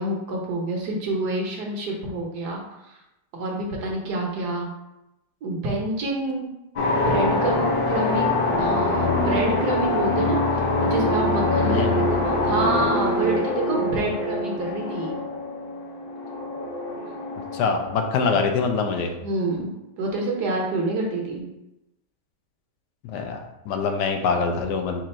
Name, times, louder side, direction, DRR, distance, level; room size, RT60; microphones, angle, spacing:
voice 1, 0.0-3.0 3.3-4.7 5.4-6.5 7.0-10.4 10.8-15.2 19.2-19.7 20.0-21.4, right 2 dB, 70° right, -1 dB, 1.5 m, -27 dB
sound 1, 6.8-18.2, left 2 dB, 60° left, 0.5 m, -24 dB
voice 2, 17.5-19.1 23.0-25.0, left 5 dB, 80° left, 4 dB, 1.2 m, -24 dB
4.5 x 2.5 x 4.2 m, 0.92 s
omnidirectional pair, 1.8 m